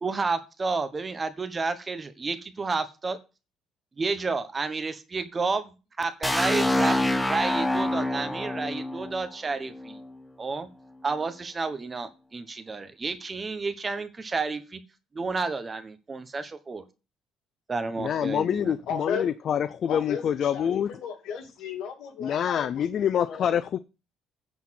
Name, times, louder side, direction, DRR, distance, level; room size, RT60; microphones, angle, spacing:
voice 1, 0.0-3.2 4.0-7.0 7.2-10.0 10.4-10.7 11.0-14.8 15.1-16.8 17.7-18.8, right 4 dB, 25° right, 1.2 m, -31 dB
sound 1, 6.2-10.1, left 1 dB, 10° left, 1.0 m, -26 dB
voice 2, 18.0-20.9 22.2-23.8, left 9 dB, 55° left, 0.4 m, -26 dB
voice 3, 18.9-19.3 19.9-23.6, left 7 dB, 75° left, 2.4 m, -35 dB
9.9 x 4.3 x 7.5 m
cardioid pair, 100°, 0 cm